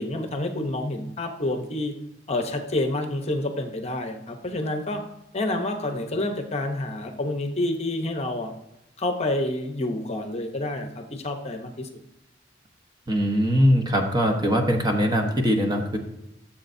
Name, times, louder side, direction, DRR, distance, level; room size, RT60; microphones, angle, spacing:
voice 1, 0.0-1.9 2.3-5.0 5.3-8.5 9.0-11.9, left 1 dB, 35° left, 5 dB, 0.9 m, -28 dB
voice 2, 13.1-16.0, equal, 25° right, 3 dB, 1.1 m, -21 dB
14.0 x 7.3 x 2.7 m, 0.86 s
head